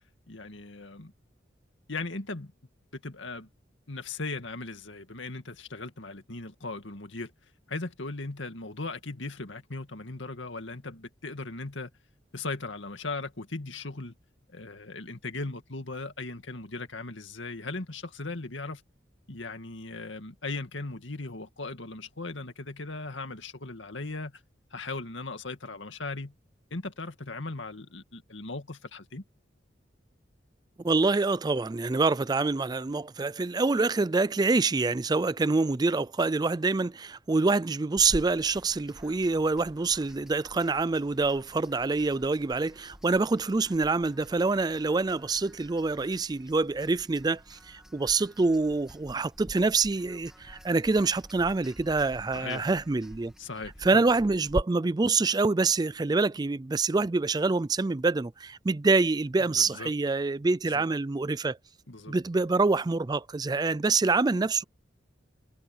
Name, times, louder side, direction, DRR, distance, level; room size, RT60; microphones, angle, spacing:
voice 1, 0.3-1.1 1.9-2.5 2.9-3.5 3.9-7.3 7.7-11.9 12.3-14.1 14.5-18.8 19.3-24.3 24.7-26.3 26.7-29.2 52.3-52.7 53.4-54.0 59.6-59.9 60.7-60.8 61.9-62.1, left 3 dB, 85° left, 2.1 m, -38 dB
voice 2, 30.8-53.3 53.8-61.6 62.1-64.6, right 3 dB, 20° right, 0.4 m, -26 dB
sound 1, 38.0-54.6, equal, 5° right, 2.3 m, -45 dB
head